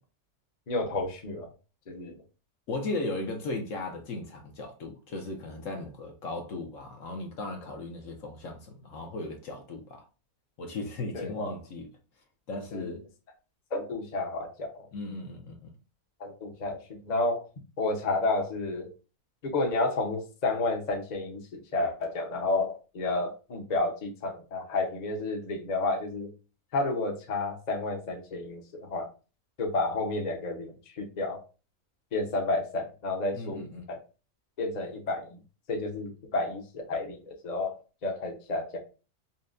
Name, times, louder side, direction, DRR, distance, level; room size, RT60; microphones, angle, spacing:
voice 1, 0.7-1.5 1.9-2.1 11.1-11.3 12.7-13.0 13.7-14.9 16.2-17.4 17.8-18.9 19.4-26.3 26.7-29.1 29.6-31.4 32.1-34.0 34.6-35.4 35.7-37.8 38.0-38.8, left 2 dB, 35° left, 0.7 m, -31 dB
voice 2, 2.7-10.0 10.6-11.9 12.5-13.0 14.9-15.7 33.3-33.9, left 2 dB, 65° left, 1.1 m, -36 dB
5.5 x 2.2 x 2.5 m
omnidirectional pair, 1.6 m